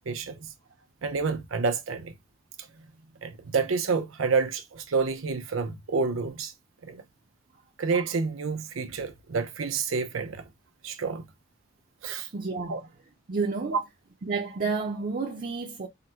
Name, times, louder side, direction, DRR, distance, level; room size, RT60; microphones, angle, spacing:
voice 1, 0.1-0.5 1.0-2.1 3.2-6.5 6.8-7.0 7.8-10.4 10.8-11.2 12.0-12.3 12.7-12.8 13.7-13.8, right 4 dB, 90° right, 0.6 m, -28 dB
voice 2, 12.3-12.8 13.3-13.8 14.2-15.9, right 4 dB, 45° right, 0.5 m, -30 dB
3.8 x 2.1 x 4.2 m
head